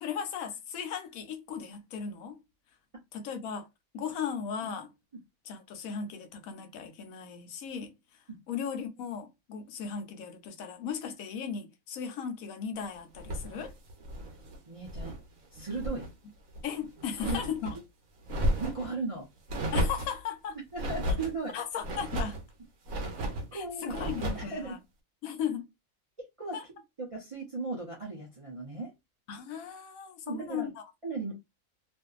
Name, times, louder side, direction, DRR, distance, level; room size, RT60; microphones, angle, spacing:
voice 1, 0.0-2.4 3.1-3.7 3.9-4.9 5.4-7.9 8.5-13.7 16.6-17.7 19.7-20.6 21.5-22.4 23.5-24.8 25.2-25.7 26.5-26.6 29.3-30.8, left 7 dB, 90° left, 1.1 m, -37 dB
sound 1, 13.2-15.2 15.6-16.1 16.5-17.8 18.2-18.9 19.5-20.2 20.8-21.3 21.8-22.4 22.9-23.5 23.9-24.5, equal, 80° right, 1.1 m, -33 dB
voice 2, 14.7-15.1 15.5-16.0 17.2-17.5 18.6-19.3 20.7-21.5 23.5-24.0 24.3-24.8 26.4-26.6 27.0-28.9 30.3-30.7 31.0-31.4, right 3 dB, 40° right, 0.5 m, -36 dB
2.6 x 2.5 x 2.3 m
omnidirectional pair, 1.4 m